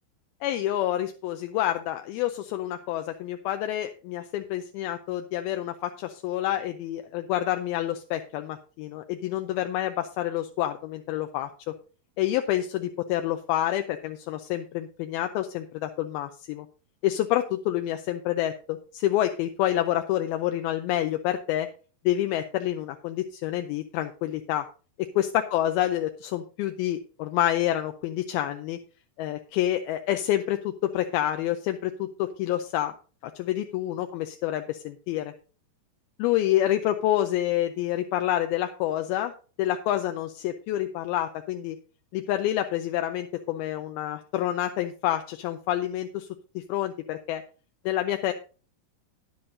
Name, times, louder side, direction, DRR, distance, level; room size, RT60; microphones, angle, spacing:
voice 1, 0.4-11.5 12.2-16.7 17.0-21.7 22.1-24.7 25.0-28.8 29.2-32.9 33.2-35.3 36.2-39.3 39.6-41.8 42.1-46.3 46.6-47.4 47.9-48.3, left 13 dB, 80° left, 6 dB, 2.4 m, -28 dB
12.5 x 10.5 x 2.7 m, 0.36 s
omnidirectional pair, 4.7 m